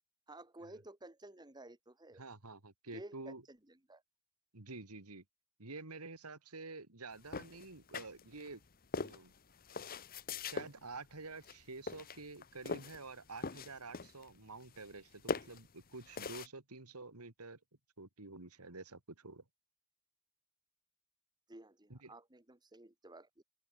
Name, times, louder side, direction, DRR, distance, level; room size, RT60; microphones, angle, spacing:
voice 1, 0.3-2.2 2.9-4.0 21.5-23.4, right 2 dB, 20° right, 1.8 m, -53 dB
voice 2, 2.2-3.4 4.5-5.2 5.6-8.6 9.0-9.3 10.4-17.6 18.0-19.4 21.9-22.1, right 3 dB, 90° right, 2.8 m, -49 dB
sound 1, 7.3-8.5 8.9-10.7 11.4-11.6 11.9-13.0 13.3-14.3 14.6-16.5, left 4 dB, 40° left, 1.1 m, -41 dB
open air
head